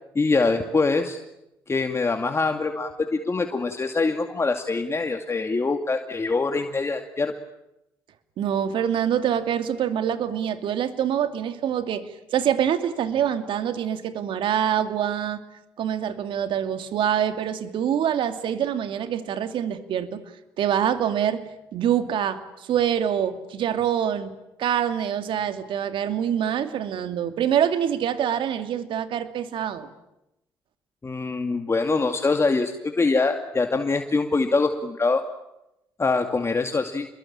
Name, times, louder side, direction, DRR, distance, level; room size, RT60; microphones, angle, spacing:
voice 1, 0.1-1.2 1.7-7.3 31.0-35.2 36.0-37.1, left 3 dB, 30° left, 5 dB, 2.5 m, -24 dB
voice 2, 8.4-15.4 15.8-20.2 20.6-29.9, right 9 dB, 70° right, 9 dB, 2.6 m, -25 dB
29.5 x 22.0 x 8.9 m, 0.88 s
supercardioid pair, 55°, 9 cm